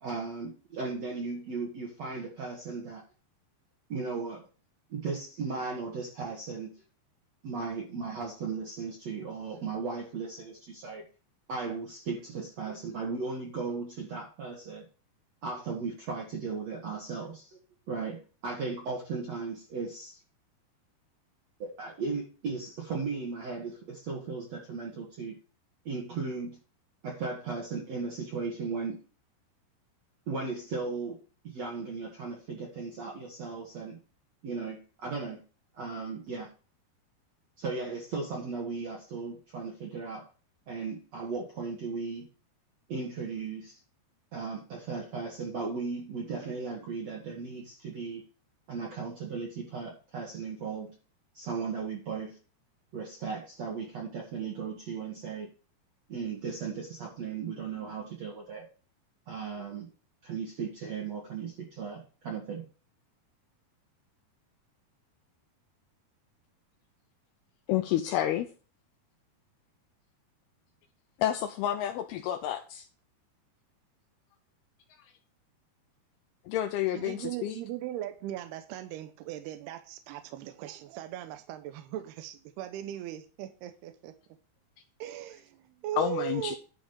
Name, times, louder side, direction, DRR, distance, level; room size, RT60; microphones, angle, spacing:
voice 1, 0.0-3.0 3.9-4.4 4.9-6.8 7.4-11.1 11.5-14.9 15.4-17.6 17.9-20.2 21.6-25.4 25.9-26.6 27.0-29.0 30.3-31.2 31.4-34.0 34.4-35.4 35.7-36.5 37.6-40.2 40.7-42.3 42.9-43.8 44.3-48.2 48.7-50.9 51.3-52.4 52.9-55.5 56.1-58.7 59.3-59.9 60.2-62.6, right 4 dB, 50° right, 2.4 m, -36 dB
voice 2, 67.7-68.5 71.2-72.9 76.5-77.6 86.0-86.6, left 12 dB, 80° left, 2.6 m, -29 dB
voice 3, 76.9-84.2 85.0-86.6, right 12 dB, 80° right, 2.8 m, -38 dB
11.5 x 5.0 x 5.3 m
omnidirectional pair, 4.6 m